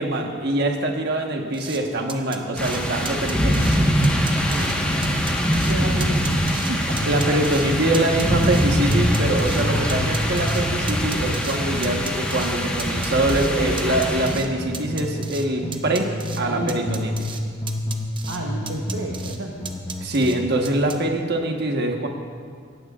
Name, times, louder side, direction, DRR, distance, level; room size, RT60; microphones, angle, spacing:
voice 1, 0.0-3.7 7.1-16.1 16.4-17.3 20.0-22.1, right 1 dB, 55° right, 2 dB, 1.3 m, -24 dB
sound 1, 1.5-1.8 2.1-2.8 3.1-3.8 4.0-4.7 5.0-5.7 6.0-6.7 7.0-7.6 7.9-9.6 9.9-11.6 11.8-12.5 12.8-13.5 13.8-14.5 14.7-15.5 15.7-16.4 16.7-17.4 17.7-18.4 18.7-19.4 19.6-20.4 20.6-21.0, right 5 dB, 25° right, 0.8 m, -35 dB
sound 2, 2.6-14.4, equal, 5° left, 1.3 m, -23 dB
sound 3, 3.2-7.3 7.6-9.4 9.6-15.3 15.6-17.4 17.6-20.5, left 1 dB, 20° left, 0.9 m, -31 dB
voice 2, 4.5-4.8 5.7-7.1 9.7-10.1 16.4-17.1 18.3-19.7, right 1 dB, 75° right, -1 dB, 1.1 m, -32 dB
18.5 x 15.5 x 2.5 m, 2.2 s
head